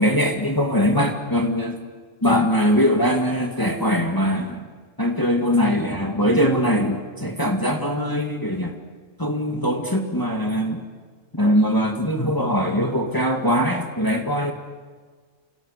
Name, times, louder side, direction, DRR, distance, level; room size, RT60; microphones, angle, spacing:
voice 1, 0.0-1.8 2.2-4.6 5.0-8.7 9.2-10.8 11.3-14.5, equal, 15° left, 2 dB, 2.1 m, -21 dB
30.0 x 29.0 x 6.7 m, 1.5 s
omnidirectional pair, 1.3 m